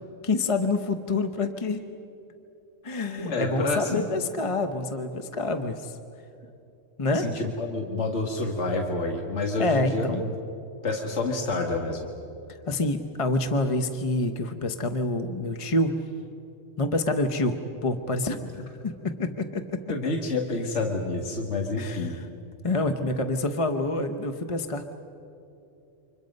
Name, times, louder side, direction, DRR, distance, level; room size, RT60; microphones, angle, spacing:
voice 1, 0.2-1.8 2.8-6.0 7.0-7.3 9.6-10.2 12.7-15.9 16.8-17.6 17.8-19.6 21.8-22.2 22.6-24.9, left 2 dB, 30° left, 7 dB, 0.9 m, -27 dB
voice 2, 3.2-4.0 7.1-10.3 10.8-12.0 19.9-22.2, left 3 dB, 65° left, 1 dB, 2.1 m, -28 dB
29.0 x 26.0 x 5.3 m, 2.8 s
omnidirectional pair, 1.3 m